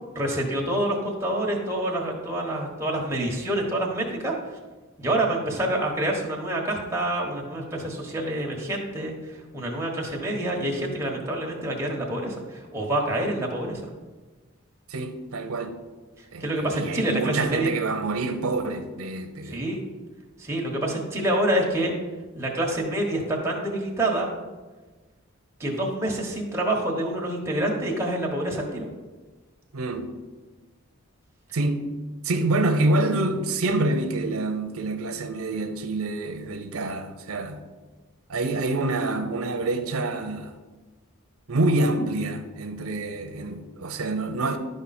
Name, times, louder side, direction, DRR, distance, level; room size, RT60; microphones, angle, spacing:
voice 1, 0.1-4.4 5.0-13.9 16.2-17.7 19.4-19.8 20.4-21.9 22.3-24.3 25.6-28.9, right 1 dB, 10° right, -2 dB, 1.3 m, -27 dB
voice 2, 14.9-15.8 16.3-19.6 29.7-30.2 31.5-31.9 32.2-37.6 38.3-40.6 41.5-44.6, right 2 dB, 90° right, 7 dB, 0.7 m, -27 dB
11.5 x 5.1 x 4.3 m, 1.3 s
head